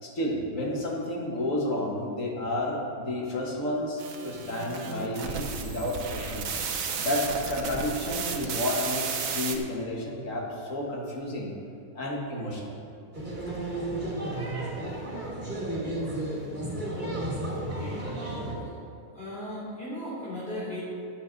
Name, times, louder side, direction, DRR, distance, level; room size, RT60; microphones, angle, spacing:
voice 1, 0.0-11.6 11.9-12.8 13.5-13.6, left 1 dB, 60° left, -1 dB, 1.9 m, -31 dB
sound 1, 4.0-9.6, right 6 dB, 65° right, 1.2 m, -33 dB
sound 2, 13.1-18.5, right 1 dB, 30° right, 2.5 m, -33 dB
voice 2, 17.5-18.2 18.6-18.7 19.1-20.8, left 1 dB, 40° left, -8 dB, 3.1 m, -37 dB
13.0 x 8.9 x 4.0 m, 2.7 s
omnidirectional pair, 1.6 m